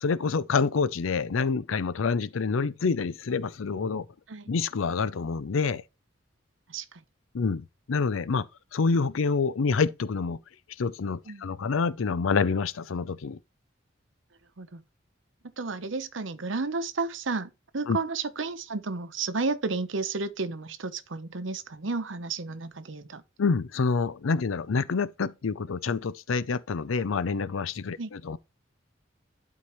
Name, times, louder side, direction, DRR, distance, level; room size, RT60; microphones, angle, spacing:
voice 1, 0.0-4.1 4.5-5.8 7.3-8.5 8.7-10.4 10.8-13.4 17.9-18.0 23.4-28.4, left 4 dB, 85° left, 0.5 m, -27 dB
voice 2, 6.7-7.0 11.3-11.4 14.6-14.8 15.6-23.2 28.0-28.1, right 3 dB, 70° right, 0.9 m, -32 dB
11.5 x 4.6 x 3.1 m
head